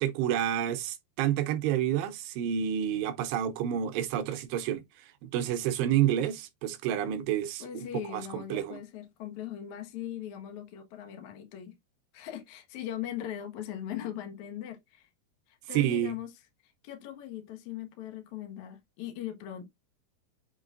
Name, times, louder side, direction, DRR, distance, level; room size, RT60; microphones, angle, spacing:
voice 1, 0.0-8.8 15.7-16.2, right 10 dB, 80° right, 2.6 m, -29 dB
voice 2, 7.6-11.7 12.1-15.1 15.5-16.3 16.6-19.7, left 11 dB, 65° left, 1.9 m, -40 dB
8.1 x 4.7 x 2.5 m
omnidirectional pair, 5.4 m